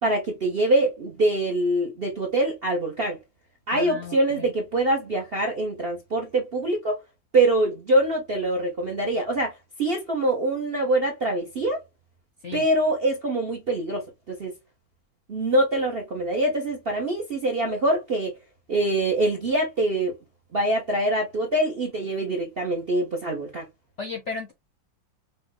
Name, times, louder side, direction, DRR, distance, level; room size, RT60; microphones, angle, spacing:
voice 1, 0.0-3.2 3.7-7.0 7.3-11.8 12.5-14.5 15.3-18.3 18.7-20.2 20.5-23.6, right 1 dB, 50° right, 0.6 m, -24 dB
voice 2, 3.7-4.5 12.4-12.6 24.0-24.5, left 4 dB, 60° left, 0.7 m, -35 dB
5.4 x 2.1 x 3.7 m
omnidirectional pair, 2.1 m